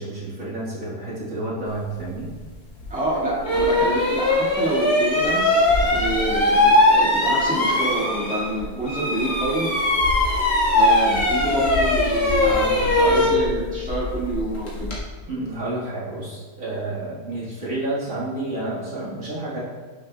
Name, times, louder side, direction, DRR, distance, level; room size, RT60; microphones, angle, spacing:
voice 1, 0.0-2.3 12.4-13.3 14.8-14.9 15.3-19.6, right 2 dB, 60° right, -7 dB, 2.2 m, -30 dB
sound 1, 2.8-2.9 3.4-8.6 8.9-15.0, left 1 dB, 80° left, 2.2 m, -20 dB
voice 2, 2.9-9.8 10.7-14.9, right 1 dB, 5° right, -7 dB, 1.8 m, -27 dB
9.1 x 6.7 x 2.3 m, 1.4 s
omnidirectional pair, 1.6 m